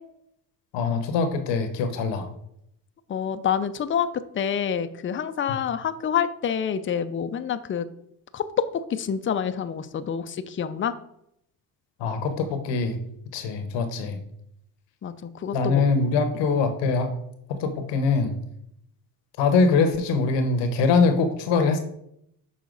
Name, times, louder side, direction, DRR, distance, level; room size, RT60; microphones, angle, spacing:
voice 1, 0.7-2.3 12.0-13.0 13.3-14.2 15.5-17.1 17.5-18.4 19.4-21.8, left 4 dB, 85° left, 8 dB, 1.0 m, -23 dB
voice 2, 3.1-4.1 4.3-7.9 8.3-8.6 8.9-10.9 15.0-15.8, left 8 dB, 30° left, 11 dB, 0.5 m, -27 dB
6.4 x 4.1 x 3.9 m, 0.74 s
cardioid pair, 80°, 42 cm